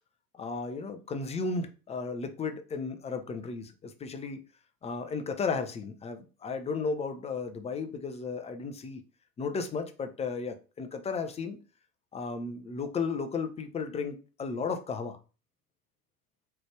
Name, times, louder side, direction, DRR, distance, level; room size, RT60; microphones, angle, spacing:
voice 1, 0.3-4.4 4.8-9.0 9.4-11.6 12.1-15.2, left 4 dB, 15° left, 0.6 m, -34 dB
3.9 x 3.3 x 3.3 m
hypercardioid pair, 90°, 48 cm